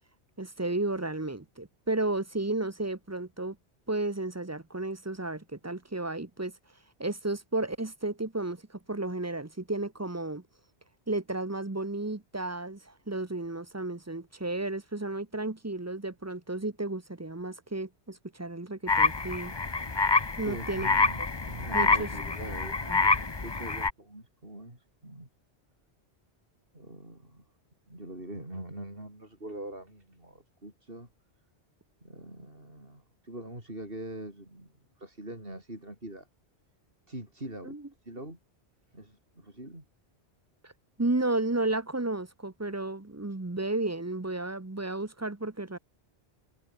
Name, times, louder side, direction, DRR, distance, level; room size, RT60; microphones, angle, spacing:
voice 1, 0.4-3.6 3.9-6.5 7.0-8.6 8.9-10.4 11.1-19.5 20.4-20.9 21.7-22.1 22.9-23.0 37.6-37.8 40.6-40.7 41.0-45.8, right 2 dB, 15° right, 0.9 m, -33 dB
sound 1, 18.9-23.9, left 3 dB, 25° left, 1.0 m, -27 dB
voice 2, 20.4-21.2 21.5-25.3 26.7-27.5 27.9-31.1 32.0-36.3 37.1-37.8 38.0-38.4 38.9-39.8, right 1 dB, 55° right, 7.1 m, -43 dB
omnidirectional pair, 1.1 m